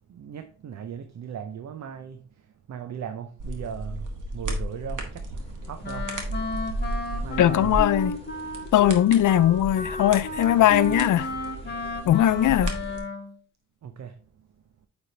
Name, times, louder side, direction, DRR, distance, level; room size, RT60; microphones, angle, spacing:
voice 1, 0.1-2.3 2.7-5.2 5.7-6.3 7.2-7.8 13.8-14.2, right 7 dB, 65° right, 0.6 m, -38 dB
sound 1, 3.4-13.0, right 1 dB, 90° right, 1.4 m, -34 dB
sound 2, 5.3-13.0, left 3 dB, 20° left, 1.4 m, -50 dB
Wind instrument woodwind instrument, 5.8-13.4, left 1 dB, 35° left, 1.1 m, -33 dB
voice 2, 7.4-8.2 8.7-11.3 12.1-12.7, left 12 dB, 75° left, 0.4 m, -20 dB
8.7 x 3.5 x 3.9 m
wide cardioid pair, 110°, 30 cm